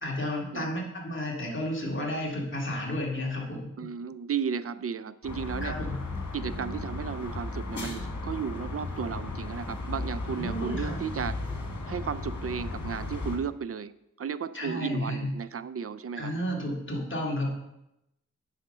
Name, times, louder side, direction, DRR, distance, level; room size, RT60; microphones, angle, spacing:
voice 1, 0.0-3.7 5.6-6.0 10.4-11.0 14.5-15.3 16.2-17.5, left 1 dB, 40° left, -1 dB, 2.5 m, -32 dB
voice 2, 3.8-5.8 6.3-11.4 11.9-13.9 14.2-16.3, right 6 dB, 50° right, 15 dB, 0.5 m, -34 dB
sound 1, 5.2-13.4, left 2 dB, 85° left, 1.9 m, -35 dB
9.1 x 5.0 x 6.6 m, 0.86 s
wide cardioid pair, 85°, 29 cm